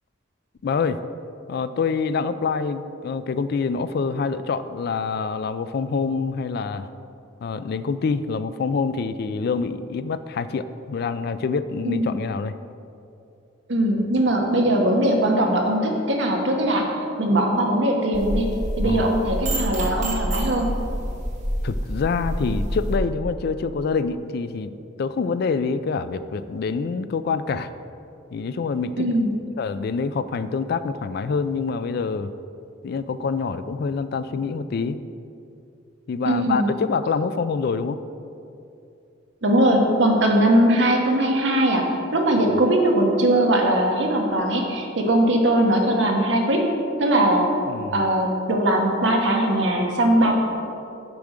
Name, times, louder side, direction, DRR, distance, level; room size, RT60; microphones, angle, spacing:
voice 1, 0.6-1.0 1.5-6.9 7.4-12.6 18.8-19.1 21.6-24.7 25.0-27.7 28.3-29.2 29.6-32.3 32.8-35.0 36.1-38.0 47.7-48.0, left 5 dB, 55° left, 12 dB, 0.3 m, -26 dB
voice 2, 13.7-16.9 17.2-18.5 18.8-20.7 29.0-29.4 36.2-36.7 39.4-41.8 42.1-46.6 47.0-47.5 47.9-50.3, right 1 dB, 70° right, 1 dB, 1.2 m, -20 dB
sound 1, 18.1-23.0, equal, 40° right, 1.0 m, -27 dB
6.9 x 4.9 x 6.6 m, 2.6 s
head